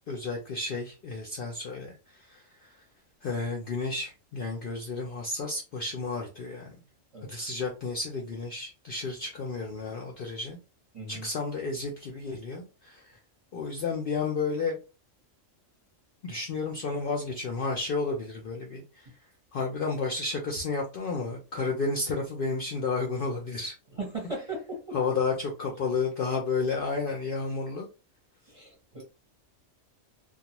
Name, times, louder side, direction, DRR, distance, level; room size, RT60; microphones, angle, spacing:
voice 1, 0.1-2.8 3.2-6.8 7.2-10.6 11.1-13.2 13.5-14.8 16.2-19.1 19.5-23.7 24.9-27.9, left 4 dB, 60° left, 0.6 m, -32 dB
voice 2, 10.9-11.3 23.9-25.0 28.5-29.0, right 2 dB, 30° right, 0.8 m, -37 dB
2.3 x 2.3 x 2.9 m
omnidirectional pair, 1.3 m